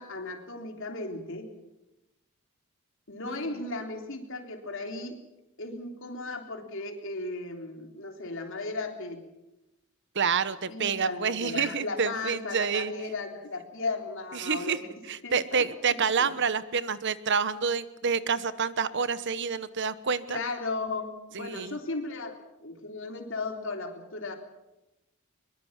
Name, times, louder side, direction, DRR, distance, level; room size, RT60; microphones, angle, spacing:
voice 1, 0.0-1.5 3.1-5.2 5.6-9.2 10.7-14.9 15.2-15.7 16.2-16.3 20.3-24.4, left 3 dB, 60° left, 4 dB, 3.5 m, -36 dB
voice 2, 10.1-12.9 14.3-14.8 15.1-20.4 21.3-21.8, right 6 dB, 55° right, 15 dB, 1.1 m, -28 dB
22.5 x 22.5 x 7.4 m, 0.94 s
head